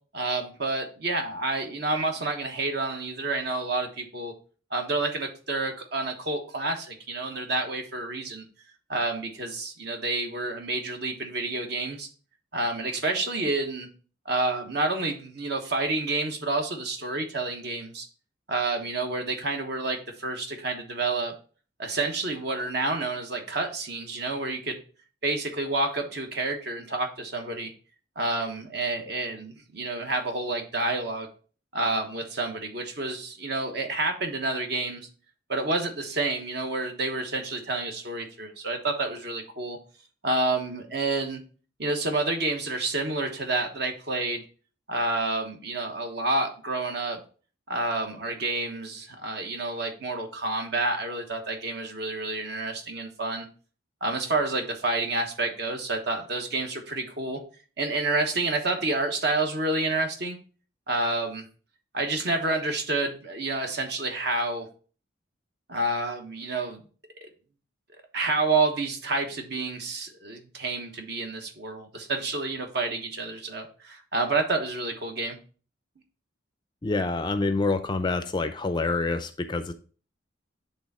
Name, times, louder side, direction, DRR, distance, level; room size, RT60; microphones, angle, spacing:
voice 1, 0.1-4.3 4.7-8.4 8.9-12.1 12.5-13.9 14.2-18.1 18.5-21.3 21.8-24.8 25.2-27.7 28.2-31.3 31.7-35.0 35.5-39.8 40.2-41.4 41.8-44.4 44.9-47.2 47.7-53.5 54.0-57.4 57.8-60.4 60.9-61.4 61.9-64.7 65.7-66.8 67.2-67.3 68.1-75.4, right 2 dB, 55° right, 4 dB, 1.2 m, -29 dB
voice 2, 76.8-79.7, left 3 dB, 25° left, 9 dB, 0.4 m, -27 dB
8.3 x 3.5 x 4.2 m, 0.39 s
head